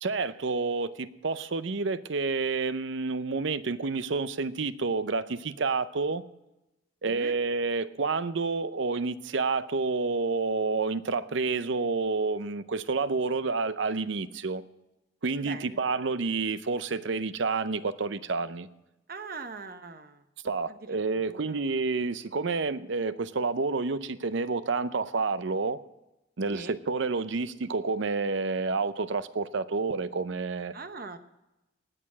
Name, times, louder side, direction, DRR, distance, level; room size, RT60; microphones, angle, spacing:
voice 1, 0.0-6.2 7.0-14.6 15.2-18.7 20.4-25.8 26.4-30.7, right 4 dB, 70° right, 14 dB, 0.6 m, -29 dB
voice 2, 7.0-7.4 15.4-15.8 19.1-20.2 20.7-21.6 26.5-26.8 30.7-31.2, right 4 dB, 45° right, 9 dB, 0.9 m, -42 dB
19.0 x 6.8 x 7.4 m, 0.96 s
head